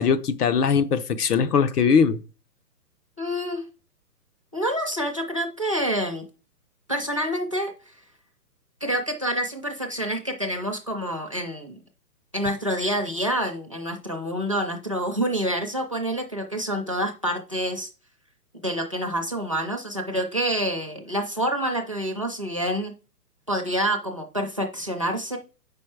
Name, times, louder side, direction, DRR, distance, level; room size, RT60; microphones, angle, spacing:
voice 1, 0.0-2.2, left 6 dB, 65° left, 0.9 m, -20 dB
voice 2, 3.2-3.6 4.5-6.2 6.9-7.9 8.8-11.8 12.3-17.9 18.6-22.9 23.5-25.4, equal, 20° right, 0.4 m, -27 dB
7.4 x 5.2 x 4.6 m
hypercardioid pair, 160°, 49 cm